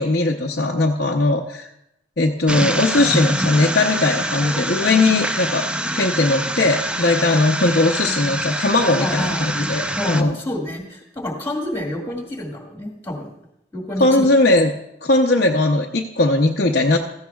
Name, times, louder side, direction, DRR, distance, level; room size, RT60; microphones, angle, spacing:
voice 1, 0.0-1.7 2.2-5.7 6.0-10.4 14.0-14.7 15.0-17.0, left 2 dB, 55° left, -1 dB, 0.7 m, -18 dB
sound 1, 2.5-10.2, right 1 dB, 5° right, 0.4 m, -25 dB
voice 2, 8.9-9.5 10.0-13.3 13.7-14.3, left 1 dB, 15° left, -1 dB, 2.0 m, -28 dB
16.0 x 13.5 x 2.3 m, 0.82 s
head